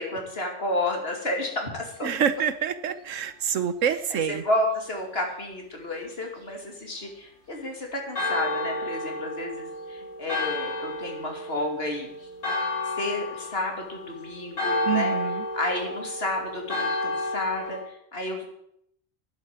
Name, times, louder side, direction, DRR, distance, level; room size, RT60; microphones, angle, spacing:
voice 1, 0.0-2.1 4.1-12.3 13.0-15.1 15.5-18.4, left 1 dB, 50° left, 2 dB, 3.0 m, -31 dB
voice 2, 2.0-4.4 14.9-15.4, right 8 dB, 75° right, 13 dB, 1.2 m, -27 dB
Church bell, 8.1-17.8, left 2 dB, 70° left, 4.3 m, -31 dB
10.5 x 8.1 x 9.5 m, 0.73 s
omnidirectional pair, 1.3 m